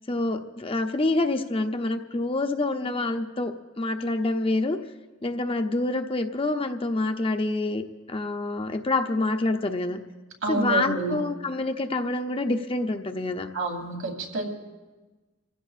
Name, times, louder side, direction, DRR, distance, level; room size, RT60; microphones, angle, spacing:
voice 1, 0.1-4.8 5.2-10.0 10.5-13.5, left 2 dB, 25° left, 6 dB, 0.6 m, -27 dB
voice 2, 10.4-11.2 13.5-14.4, right 3 dB, 80° right, 0 dB, 2.8 m, -28 dB
29.5 x 15.5 x 2.4 m, 1.2 s
head